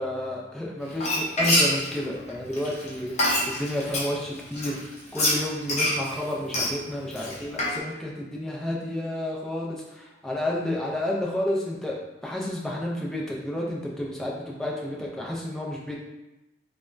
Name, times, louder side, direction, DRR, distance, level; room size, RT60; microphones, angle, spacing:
voice 1, 0.0-3.1 3.6-12.0 12.2-15.9, left 1 dB, 5° left, -4 dB, 0.4 m, -31 dB
Frying (food), 0.9-4.1 4.5-7.8, left 1 dB, 40° left, 0.6 m, -25 dB
3.2 x 2.1 x 2.4 m, 0.99 s
head